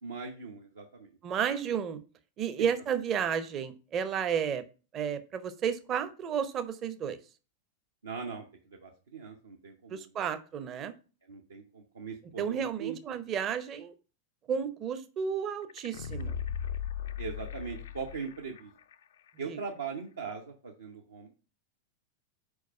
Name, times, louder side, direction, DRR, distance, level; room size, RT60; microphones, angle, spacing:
voice 1, 0.0-1.2 8.0-10.1 11.3-13.2 17.2-18.7 19.4-21.3, right 5 dB, 70° right, 1 dB, 0.8 m, -40 dB
voice 2, 1.2-2.0 2.4-4.6 4.9-7.2 9.9-10.9 12.4-13.9 14.5-16.4 19.5-19.6, right 7 dB, 30° right, 11 dB, 0.7 m, -32 dB
sound 1, 15.7-18.6 18.9-19.0, left 8 dB, 60° left, 0.3 m, -37 dB
4.7 x 4.6 x 5.4 m, 0.36 s
figure-of-eight pair, 90°, 0 cm